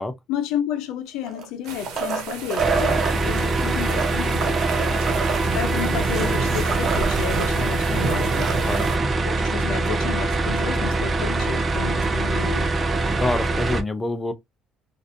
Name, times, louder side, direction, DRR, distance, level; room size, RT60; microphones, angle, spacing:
voice 1, 0.3-5.2 5.5-8.5 9.3-12.7, left 10 dB, 85° left, 0.6 m, -31 dB
sound 1, 1.2-3.1 3.8-7.5 7.8-7.9 8.2-9.0 10.5-10.6, right 5 dB, 50° right, 1.0 m, -28 dB
sound 2, 1.6-9.0, right 4 dB, 85° right, 1.1 m, -33 dB
sound 3, 2.6-13.8, right 3 dB, 30° right, 0.6 m, -23 dB
voice 2, 8.7-9.1 13.0-14.3, left 2 dB, 10° left, 0.6 m, -27 dB
3.9 x 2.5 x 2.6 m
cardioid pair, 115°, 0 cm